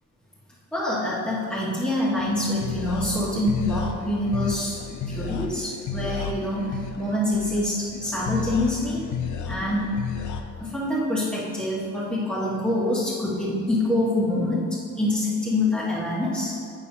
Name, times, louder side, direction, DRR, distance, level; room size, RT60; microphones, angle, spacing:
voice 1, 0.7-4.8 5.1-9.0 9.5-9.9 10.6-14.6 15.0-16.7, left 1 dB, 5° left, -8 dB, 1.6 m, -26 dB
sound 1, 2.2-10.4, left 6 dB, 80° left, 0.6 m, -32 dB
8.2 x 7.1 x 2.8 m, 2.5 s
cardioid pair, 90°, 30 cm